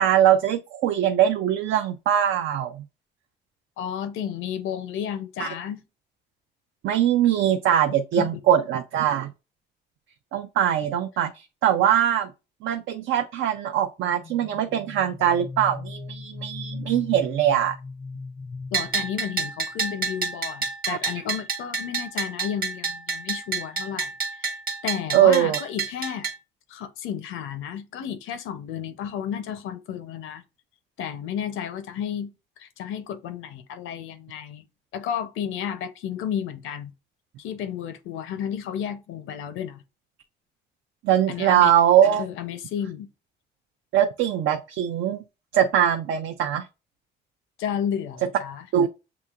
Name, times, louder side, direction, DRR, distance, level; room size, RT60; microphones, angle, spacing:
voice 1, 0.0-2.8 5.4-5.5 6.8-9.3 10.3-12.3 12.6-17.7 20.9-21.0 25.1-25.6 41.0-42.3 43.9-45.2 45.5-46.7 48.7-48.9, right 10 dB, 80° right, 0.5 m, -21 dB
voice 2, 3.8-5.8 8.2-8.5 18.7-24.6 24.8-26.3 26.7-30.4 31.0-32.3 32.6-34.6 34.9-36.9 37.4-39.8 41.3-41.7 42.2-43.1 47.6-48.6, left 9 dB, 85° left, 0.7 m, -32 dB
sound 1, 14.0-19.6, left 3 dB, 25° left, 0.4 m, -38 dB
Bell, 18.7-26.4, right 4 dB, 45° right, 1.1 m, -29 dB
7.0 x 2.8 x 2.4 m
cardioid pair, 90°, 20 cm